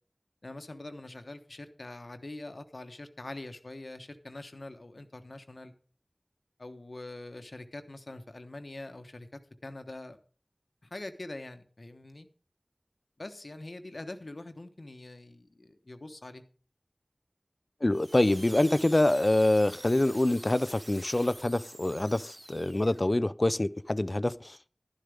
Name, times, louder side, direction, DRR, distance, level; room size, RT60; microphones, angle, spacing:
voice 1, 0.4-5.7 6.6-10.2 10.9-12.3 13.2-16.4, left 2 dB, 80° left, 1.2 m, -44 dB
voice 2, 17.8-24.6, left 1 dB, 50° left, 0.5 m, -26 dB
sound 1, 17.9-23.1, right 1 dB, 80° right, 2.6 m, -48 dB
12.0 x 11.5 x 3.5 m
wide cardioid pair, 45°, 0 cm